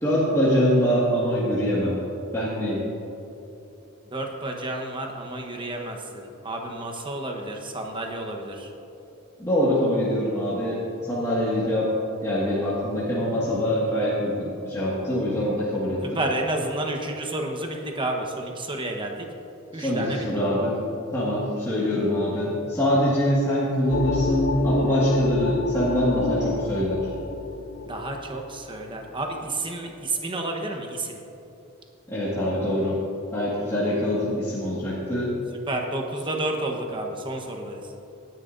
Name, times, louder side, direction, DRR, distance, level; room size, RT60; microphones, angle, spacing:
voice 1, 0.0-2.0 2.3-2.8 9.4-11.9 12.2-16.2 19.7-20.8 21.1-27.1 32.1-33.0 33.3-35.3, equal, 15° left, -9 dB, 1.8 m, -24 dB
voice 2, 4.1-8.7 16.1-19.3 19.7-20.3 27.8-31.2 35.7-37.8, right 2 dB, 25° right, 2 dB, 1.1 m, -30 dB
sound 1, 23.9-29.2, left 3 dB, 75° left, 0.5 m, -30 dB
18.0 x 10.5 x 2.6 m, 2.9 s
head